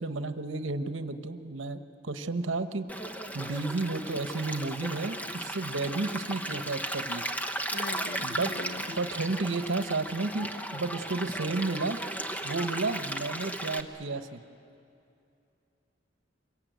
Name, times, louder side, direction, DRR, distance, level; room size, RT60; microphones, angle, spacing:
voice 1, 0.0-2.9 3.3-7.2 8.2-8.5 9.0-12.0 12.4-14.4, right 3 dB, 75° right, 10 dB, 1.0 m, -32 dB
Stream, 2.9-13.8, right 1 dB, 10° left, 0.9 m, -36 dB
voice 2, 7.7-8.8, left 1 dB, 50° left, 13 dB, 0.7 m, -40 dB
25.0 x 22.5 x 9.3 m, 2.6 s
head